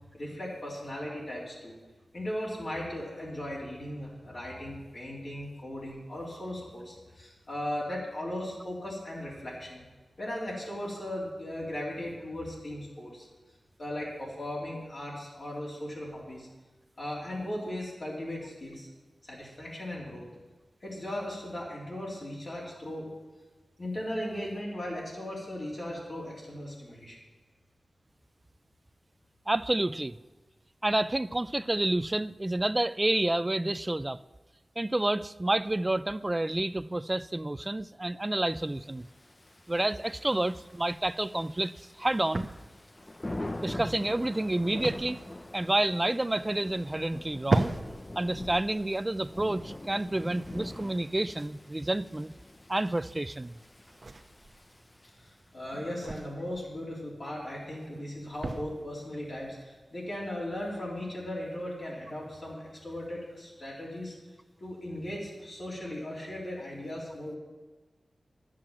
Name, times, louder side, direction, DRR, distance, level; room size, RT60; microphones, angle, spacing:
voice 1, 0.1-1.8 2.1-9.8 10.2-13.3 13.8-16.5 17.0-18.9 19.2-20.3 20.8-23.1 23.8-27.2 55.2-64.2 64.6-67.4, left 1 dB, 55° left, -6 dB, 3.6 m, -37 dB
voice 2, 29.5-30.2 30.8-34.2 34.8-39.1 39.7-42.5 43.6-45.2 45.5-47.7 48.2-52.3 52.7-53.6, right 1 dB, 25° right, 16 dB, 0.3 m, -29 dB
Thunder / Rain, 38.9-55.5, left 1 dB, 25° left, 0.6 m, -44 dB
sound 1, 40.7-60.2, right 2 dB, 50° right, 0.9 m, -39 dB
10.5 x 7.5 x 7.6 m, 1.3 s
wide cardioid pair, 75°, 0 cm